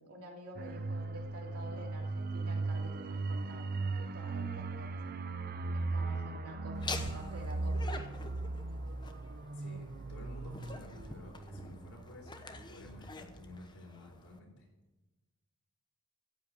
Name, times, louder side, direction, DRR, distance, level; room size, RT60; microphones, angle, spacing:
voice 1, 0.0-4.9 5.7-8.0, right 1 dB, 80° right, -1 dB, 2.9 m, -49 dB
sound 1, 0.6-12.9 13.2-13.4, right 3 dB, 40° right, 0.5 m, -38 dB
Laughter, 6.7-14.4, left 3 dB, 20° left, 0.8 m, -46 dB
voice 2, 9.5-14.7, left 1 dB, 70° left, 0 dB, 4.0 m, -52 dB
13.5 x 5.6 x 8.4 m, 1.1 s
head